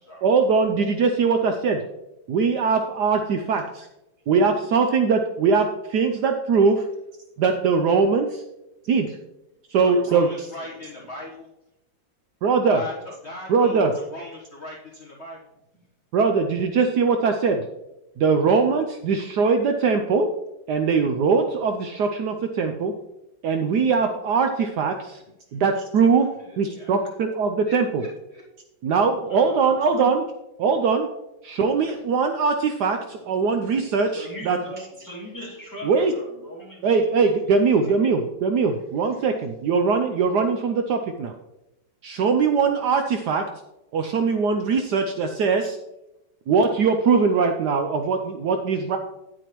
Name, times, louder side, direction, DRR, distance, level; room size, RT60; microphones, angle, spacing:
voice 1, 0.2-1.8 2.3-3.9 4.3-6.9 7.4-8.4 8.9-9.2 9.7-10.3 12.4-12.8 13.5-13.9 16.1-17.6 18.2-20.3 20.7-22.9 23.4-25.2 25.5-26.3 26.6-28.0 28.8-30.2 30.6-31.1 31.4-34.6 35.8-36.1 36.8-41.3 42.0-43.4 43.9-45.8 46.5-49.0, right 5 dB, 70° right, 5 dB, 1.1 m, -21 dB
voice 2, 9.8-11.5 12.7-15.4 26.4-26.9 27.6-28.4, left 2 dB, 40° left, -4 dB, 1.4 m, -39 dB
voice 3, 10.6-11.1 29.3-30.1 31.9-32.0 33.1-33.6 34.1-38.1 39.1-39.2 42.6-42.8, equal, 10° left, -5 dB, 2.7 m, -41 dB
9.6 x 9.0 x 3.0 m, 0.92 s
omnidirectional pair, 2.1 m